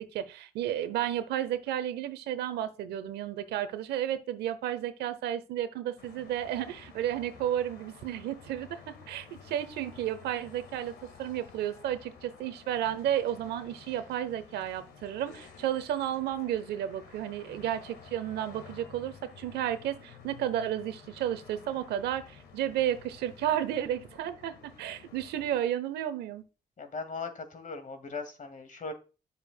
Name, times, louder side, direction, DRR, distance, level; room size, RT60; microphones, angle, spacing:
voice 1, 0.0-26.4, right 11 dB, 85° right, 0.9 m, -32 dB
sound 1, 6.0-25.6, left 6 dB, 80° left, 1.7 m, -52 dB
voice 2, 26.8-28.9, left 4 dB, 55° left, 2.1 m, -39 dB
9.4 x 7.2 x 2.2 m
supercardioid pair, 50°, 17 cm